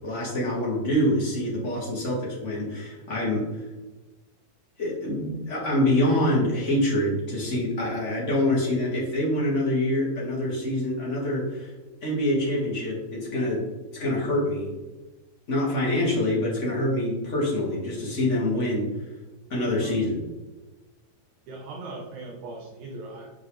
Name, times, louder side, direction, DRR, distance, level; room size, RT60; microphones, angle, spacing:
voice 1, 0.0-3.7 4.8-11.7 12.0-13.6 13.9-14.7 15.5-18.9 19.5-20.2, left 1 dB, 40° left, -4 dB, 1.1 m, -25 dB
voice 2, 19.8-20.1 21.5-23.3, right 2 dB, 70° right, -2 dB, 2.2 m, -39 dB
6.8 x 5.6 x 3.2 m, 1.1 s
omnidirectional pair, 3.9 m